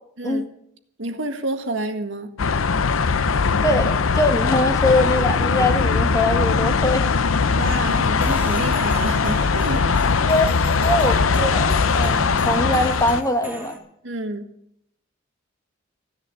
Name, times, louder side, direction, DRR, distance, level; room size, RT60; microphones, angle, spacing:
voice 1, 1.0-2.4 7.5-9.9 14.0-14.4, right 2 dB, 65° right, 1.7 m, -29 dB
sound 1, 2.4-13.2, left 5 dB, 85° left, 0.7 m, -20 dB
voice 2, 3.6-7.1 10.2-10.5 10.8-13.8, left 1 dB, 15° left, 1.1 m, -22 dB
sound 2, 8.2-13.8, right 1 dB, 10° right, 2.6 m, -36 dB
15.5 x 10.5 x 7.5 m
head